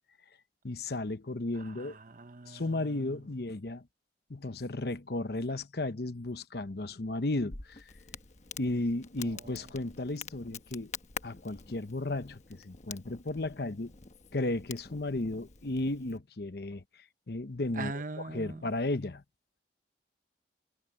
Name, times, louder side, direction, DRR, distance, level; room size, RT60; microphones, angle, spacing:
voice 1, 0.6-2.0 2.5-3.8 4.3-7.8 8.6-10.9 11.2-13.9 14.3-16.8 17.3-19.2, left 2 dB, 60° left, 0.9 m, -34 dB
voice 2, 1.8-2.9 17.8-18.6, right 3 dB, 45° right, 0.9 m, -41 dB
Crackle, 7.5-16.2, left 6 dB, 40° left, 1.2 m, -47 dB
head